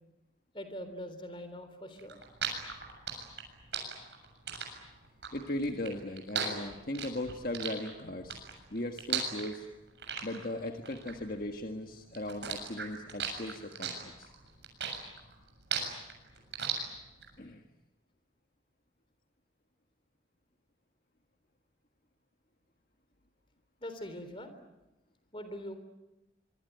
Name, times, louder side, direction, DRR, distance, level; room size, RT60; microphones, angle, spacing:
voice 1, 0.5-2.2 23.8-24.5 25.3-25.8, equal, 30° left, 9 dB, 3.6 m, -42 dB
sound 1, 2.0-11.8 12.1-17.3, right 6 dB, 75° right, 7.3 m, -37 dB
voice 2, 5.3-8.4 8.7-9.7 10.2-14.3 17.4-17.6, left 1 dB, 50° left, 4 dB, 1.7 m, -38 dB
25.5 x 24.0 x 9.4 m, 1.0 s
head